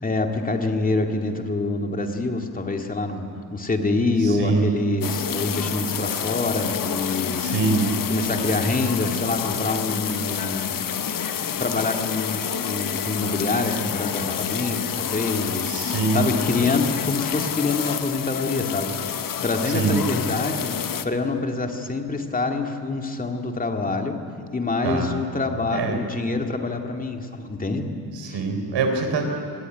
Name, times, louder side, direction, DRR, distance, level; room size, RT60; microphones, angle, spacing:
voice 1, 0.0-7.5 8.1-10.8 11.6-20.7 21.0-24.2 24.5-27.9 28.3-28.4, left 3 dB, 20° left, 4 dB, 2.3 m, -26 dB
voice 2, 4.2-4.7 7.4-7.9 15.7-16.3 19.7-20.0 24.8-25.1 25.7-26.0 28.1-29.3, right 4 dB, 90° right, 4 dB, 4.1 m, -24 dB
sound 1, 5.0-21.1, left 8 dB, 55° left, 1.1 m, -28 dB
26.0 x 19.0 x 10.0 m, 2.3 s
wide cardioid pair, 150°, 41 cm